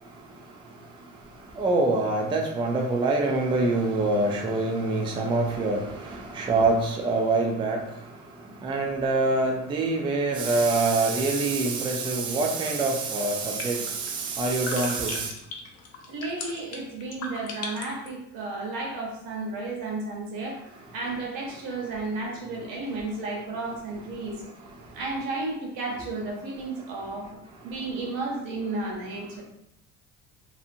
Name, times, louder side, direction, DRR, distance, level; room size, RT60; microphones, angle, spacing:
voice 1, 1.5-15.3, right 3 dB, 15° right, 1 dB, 0.3 m, -25 dB
sound 1, 12.6-18.1, left 4 dB, 50° left, 0.6 m, -39 dB
voice 2, 16.1-24.4 24.9-27.3 27.6-29.4, right 3 dB, 75° right, -1 dB, 1.0 m, -33 dB
2.7 x 2.5 x 2.6 m, 0.82 s
cardioid pair, 105°, 33 cm